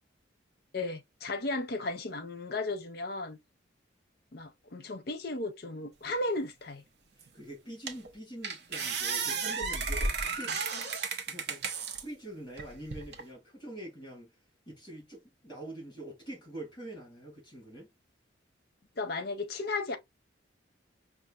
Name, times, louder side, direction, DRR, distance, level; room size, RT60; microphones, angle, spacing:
voice 1, 0.7-3.4 4.3-6.8 19.0-20.0, left 2 dB, 50° left, 0.7 m, -35 dB
voice 2, 7.2-10.6 11.3-14.3 14.7-17.9, right 1 dB, 25° left, 2.6 m, -45 dB
sound 1, 7.2-7.3 7.9-8.1 8.4-12.0 12.6-13.2, right 4 dB, 55° right, 0.7 m, -33 dB
5.5 x 2.4 x 2.4 m
head